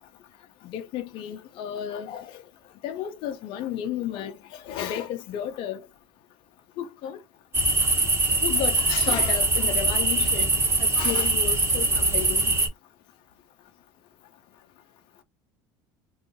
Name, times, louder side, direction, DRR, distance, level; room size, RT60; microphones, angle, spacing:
voice 1, 0.6-2.4 2.8-5.8 6.8-7.2 8.4-10.5 10.8-12.5, left 10 dB, 55° left, 0.5 m, -33 dB
sound 1, 7.5-12.7, right 2 dB, 20° right, 1.0 m, -23 dB
2.7 x 2.3 x 2.5 m
supercardioid pair, 95°, 10 cm